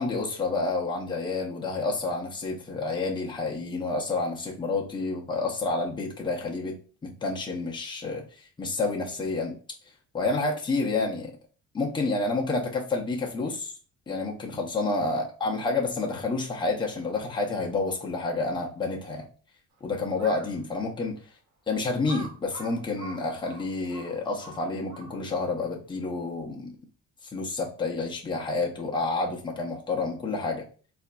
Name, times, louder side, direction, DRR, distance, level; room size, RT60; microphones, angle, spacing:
voice 1, 0.0-8.3 8.6-9.6 10.1-11.3 11.7-13.7 14.1-19.2 19.8-21.2 21.7-26.7 27.3-30.6, left 3 dB, 15° left, -1 dB, 0.6 m, -29 dB
Crow, 20.1-20.6 21.2-21.3 22.0-25.4, right 3 dB, 85° right, 1.1 m, -44 dB
3.8 x 2.5 x 2.2 m, 0.40 s
cardioid pair, 160°, 30 cm